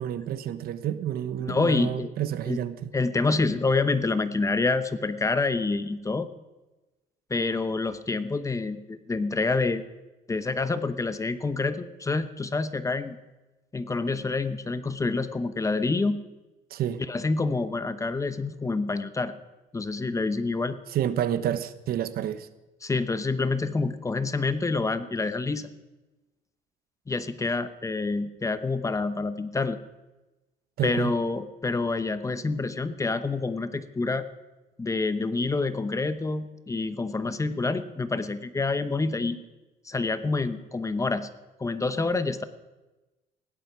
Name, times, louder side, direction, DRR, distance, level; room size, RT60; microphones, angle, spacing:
voice 1, 0.0-2.9 16.7-17.0 20.9-22.5 30.8-31.1, right 10 dB, 65° right, 13 dB, 1.0 m, -29 dB
voice 2, 1.4-2.1 2.5-2.6 2.9-6.3 7.3-9.8 10.3-13.2 13.7-16.2 17.1-19.3 19.7-20.8 22.8-25.7 27.1-29.8 30.8-34.2 34.8-39.4 39.9-41.3 41.6-42.4, left 3 dB, 20° left, 11 dB, 0.9 m, -27 dB
16.5 x 11.0 x 6.1 m, 1.1 s
cardioid pair, 110°, 17 cm